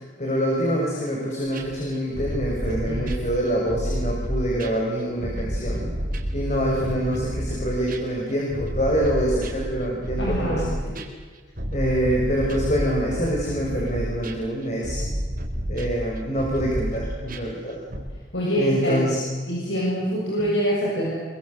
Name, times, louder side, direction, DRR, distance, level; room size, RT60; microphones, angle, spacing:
voice 1, 0.2-5.9 6.3-11.0 11.7-15.0 15.7-17.8 18.6-19.2 20.4-20.5, equal, 35° left, -2 dB, 6.2 m, -25 dB
sound 1, 1.5-4.8 5.2-18.0, equal, 45° right, 4.3 m, -30 dB
voice 2, 10.2-10.7 18.3-19.1 19.5-21.1, equal, 70° left, -4 dB, 7.3 m, -25 dB
26.0 x 24.0 x 8.2 m, 1.5 s
head